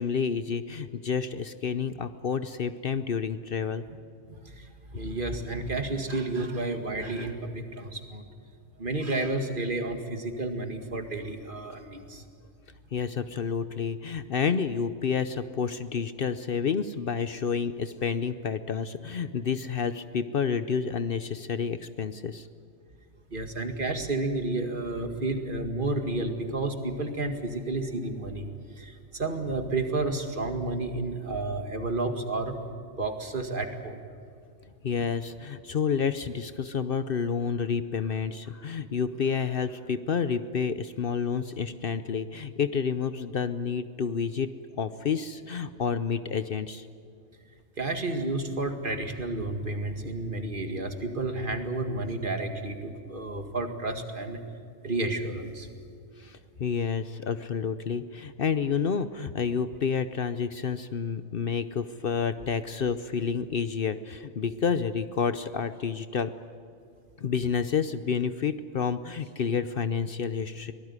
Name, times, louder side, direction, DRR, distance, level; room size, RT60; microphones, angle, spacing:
voice 1, 0.0-3.8 12.9-22.5 34.8-46.9 56.2-66.3 67.2-70.7, left 6 dB, 55° left, 12 dB, 0.9 m, -29 dB
voice 2, 4.3-8.2 8.8-12.2 23.3-28.5 28.8-32.6 33.0-34.0 47.8-54.4 54.8-55.7, right 2 dB, 45° right, 6 dB, 2.1 m, -31 dB
23.5 x 18.5 x 9.7 m, 2.3 s
omnidirectional pair, 1.2 m